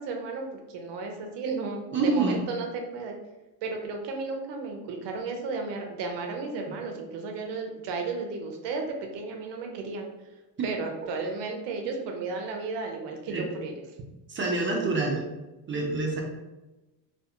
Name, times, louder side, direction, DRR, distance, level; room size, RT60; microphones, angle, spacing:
voice 1, 0.0-3.1 3.6-10.1 10.6-13.7, right 4 dB, 60° right, 3 dB, 0.7 m, -34 dB
voice 2, 1.9-2.4 6.7-6.8 13.3-13.5 14.3-15.2 15.7-16.2, right 3 dB, 25° right, -1 dB, 0.5 m, -27 dB
2.4 x 2.2 x 2.8 m, 1.1 s
cardioid pair, 110°, 47 cm